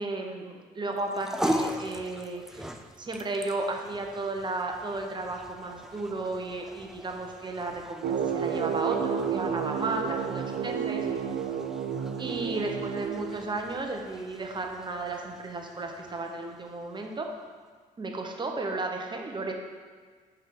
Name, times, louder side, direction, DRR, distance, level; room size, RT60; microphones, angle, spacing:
voice 1, 0.0-2.7 3.0-11.1 12.2-17.3 18.0-19.5, right 2 dB, 30° right, 2 dB, 1.0 m, -34 dB
sound 1, 0.9-17.4, equal, 5° right, 0.4 m, -40 dB
sound 2, 8.0-13.8, right 7 dB, 85° right, 0.6 m, -31 dB
5.5 x 4.6 x 5.3 m, 1.5 s
cardioid pair, 80°, 16 cm